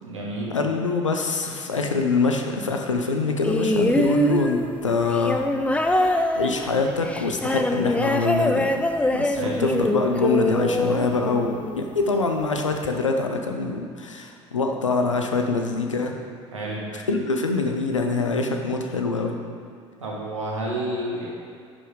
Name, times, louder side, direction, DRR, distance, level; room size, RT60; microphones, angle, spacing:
voice 1, 0.0-0.6 9.3-9.6 16.5-16.8 20.0-21.3, right 1 dB, 80° right, -5 dB, 2.0 m, -30 dB
voice 2, 0.5-5.4 5.9-6.1 6.4-8.7 9.1-16.1 17.1-19.4, left 3 dB, 80° left, 3 dB, 0.8 m, -24 dB
sound 1, 3.4-11.8 12.8-12.9, left 1 dB, 10° left, 0.6 m, -24 dB
11.0 x 5.4 x 4.9 m, 2.3 s
figure-of-eight pair, 60°, 16 cm